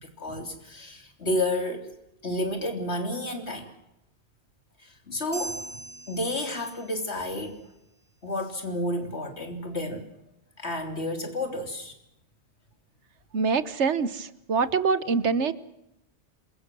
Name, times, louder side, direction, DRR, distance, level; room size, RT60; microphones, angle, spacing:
voice 1, 0.0-1.9 2.2-3.7 4.8-5.6 6.1-7.6 8.2-10.1 10.6-11.9, left 1 dB, 70° left, 5 dB, 3.6 m, -31 dB
sound 1, 5.3-7.2, right 2 dB, 25° right, 1.2 m, -40 dB
voice 2, 13.3-15.5, right 5 dB, 80° right, 15 dB, 1.4 m, -25 dB
26.5 x 22.0 x 6.2 m, 0.84 s
omnidirectional pair, 1.2 m